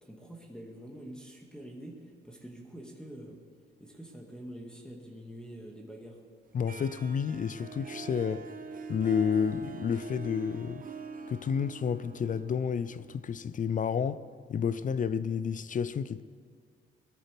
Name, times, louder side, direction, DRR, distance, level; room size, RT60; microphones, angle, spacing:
voice 1, 0.0-3.4 3.8-6.2, right 1 dB, 5° left, 2.0 m, -46 dB
voice 2, 6.5-8.4 8.9-10.8 11.3-14.2 14.5-16.2, left 7 dB, 40° left, 0.5 m, -30 dB
Harp, 6.7-13.6, right 5 dB, 45° right, 0.9 m, -44 dB
19.0 x 13.0 x 3.5 m
cardioid pair, 90°, 20 cm